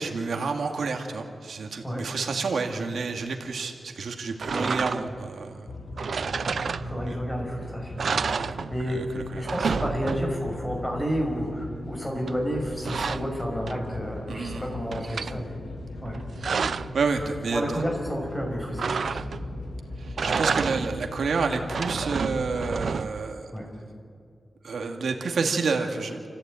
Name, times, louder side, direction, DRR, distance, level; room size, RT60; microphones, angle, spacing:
voice 1, 0.0-5.6 8.3-8.5 8.9-9.4 14.3-14.6 16.9-17.8 20.0-23.5 24.6-26.3, right 4 dB, 85° right, 3 dB, 2.2 m, -29 dB
window metal heavy slide open close creak brutal on offmic, 4.4-5.3 6.0-7.3 7.6-7.7 8.0-9.1 9.3-10.6 12.3-14.1 14.5-15.4 16.1-17.0 18.8-19.6 20.1-21.1 21.5-23.3, right 5 dB, 65° right, 0.5 m, -30 dB
sound 1, 5.7-23.0, left 2 dB, 75° left, 2.2 m, -39 dB
voice 2, 6.6-8.1 8.4-9.0 9.4-15.6 16.0-16.2 17.5-19.4 23.5-23.7, equal, 15° left, 0 dB, 6.0 m, -31 dB
29.0 x 15.0 x 9.1 m, 2.2 s
wide cardioid pair, 125°, 0 cm